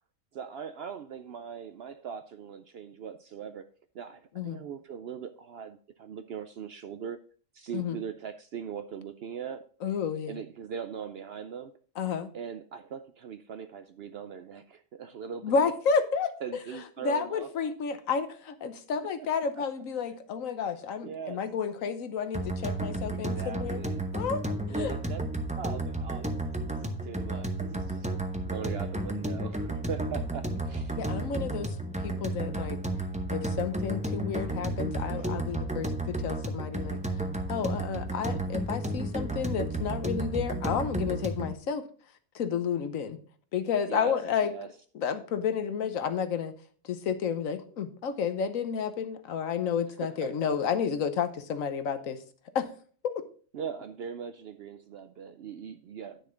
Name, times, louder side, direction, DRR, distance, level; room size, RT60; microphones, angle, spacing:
voice 1, 0.3-3.7 3.9-7.2 7.5-9.6 10.3-11.7 12.3-15.5 16.4-17.5 19.0-19.1 19.5-19.6 21.0-21.4 23.1-24.0 24.7-25.2 25.5-28.1 28.4-31.0 35.2-35.3 43.9-44.2 44.4-44.7 50.0-50.5 53.5-56.2, right 7 dB, 65° right, 10 dB, 0.6 m, -40 dB
voice 2, 9.8-10.4 12.0-12.3 15.4-16.3 17.0-23.8 24.1-24.4 24.7-24.9 31.0-31.8 32.0-32.8 33.3-37.0 37.5-41.8 42.3-43.2 43.5-44.5 44.9-46.5 46.8-52.2 52.5-52.7 53.1-53.2, left 6 dB, 75° left, 10 dB, 1.3 m, -31 dB
sound 1, 22.3-41.5, right 1 dB, 10° right, 0.5 m, -32 dB
9.8 x 6.5 x 3.8 m, 0.43 s
omnidirectional pair, 1.4 m